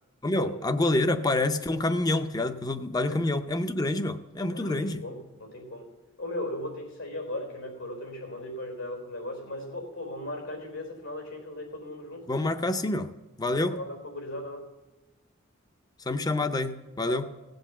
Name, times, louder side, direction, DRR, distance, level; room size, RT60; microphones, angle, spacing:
voice 1, 0.2-5.0 12.3-13.1 13.4-13.8 16.1-17.2, left 2 dB, 20° left, 10 dB, 0.6 m, -27 dB
voice 2, 4.5-5.9 6.2-12.5 13.5-14.7 17.0-17.2, left 1 dB, 80° left, 3 dB, 4.2 m, -37 dB
17.5 x 7.9 x 7.3 m, 1.1 s
head